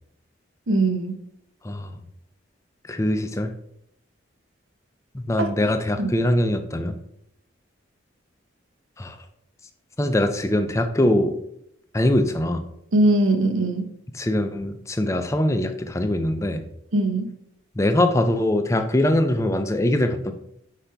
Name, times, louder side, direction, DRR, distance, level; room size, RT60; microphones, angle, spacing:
voice 1, 0.7-1.1 5.4-5.5 6.0-6.1 12.9-13.9 16.9-17.3, right 2 dB, 90° right, 7 dB, 0.7 m, -21 dB
voice 2, 2.9-3.5 5.1-7.0 9.0-9.2 10.0-11.3 11.9-12.7 14.1-16.6 17.8-20.3, left 1 dB, 15° left, 7 dB, 0.4 m, -22 dB
5.7 x 4.9 x 3.4 m, 0.74 s
head